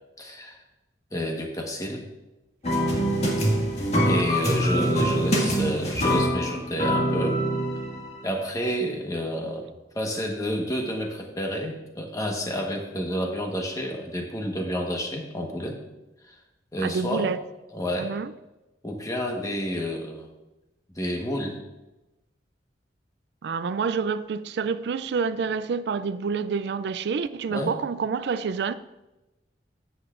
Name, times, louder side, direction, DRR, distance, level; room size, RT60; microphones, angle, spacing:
voice 1, 0.2-0.6 1.1-2.0 4.0-7.4 8.2-15.8 16.3-16.4 16.7-17.3 17.7-18.1 18.8-20.3 20.9-21.6 27.5-27.7, equal, 20° left, 1.2 m, -30 dB
sound 1, 2.6-8.2, equal, 40° left, 1.9 m, -24 dB
voice 2, 16.8-17.4 18.0-18.3 23.4-28.7, right 5 dB, 70° right, 0.3 m, -28 dB
13.0 x 8.0 x 2.5 m
head